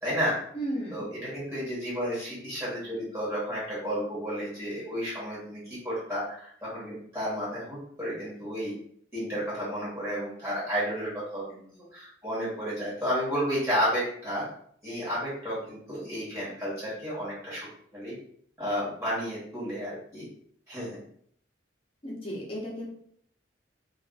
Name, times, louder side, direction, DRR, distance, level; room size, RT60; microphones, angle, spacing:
voice 1, 0.0-0.4 0.9-8.7 9.1-14.5 14.8-17.7 17.9-18.2 18.6-20.3 20.7-21.0, equal, 15° right, -9 dB, 1.2 m, -32 dB
voice 2, 0.5-1.1 22.0-22.9, right 1 dB, 30° left, -4 dB, 0.8 m, -34 dB
2.5 x 2.4 x 2.4 m, 0.64 s
head